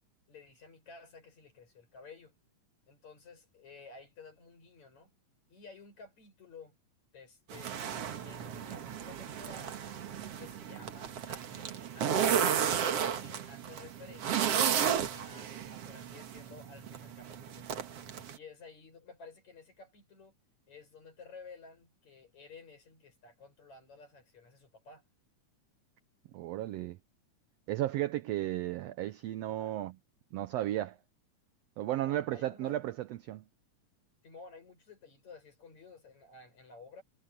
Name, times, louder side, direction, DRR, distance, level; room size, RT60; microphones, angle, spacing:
voice 1, 0.3-2.4 2.9-5.1 5.5-6.8 7.1-7.8 8.2-9.9 10.4-14.6 15.1-17.9 18.3-20.3 20.7-25.0 28.4-28.5 29.5-29.8 32.0-32.8 34.2-37.0, left 4 dB, 60° left, 8.8 m, -53 dB
sound 1, 7.5-18.4, right 8 dB, 55° right, 2.3 m, -33 dB
voice 2, 26.3-27.0 27.7-29.9 30.3-31.0 31.8-33.4, right 14 dB, 80° right, 1.4 m, -34 dB
omnidirectional pair, 3.6 m